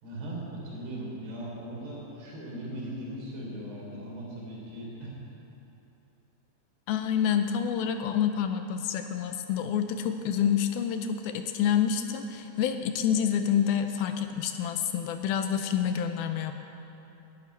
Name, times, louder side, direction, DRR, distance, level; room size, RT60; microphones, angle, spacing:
voice 1, 0.0-5.1, right 1 dB, 85° right, -4 dB, 5.5 m, -38 dB
voice 2, 6.9-16.5, left 8 dB, 80° left, 7 dB, 2.3 m, -28 dB
12.0 x 10.0 x 9.3 m, 2.9 s
omnidirectional pair, 4.7 m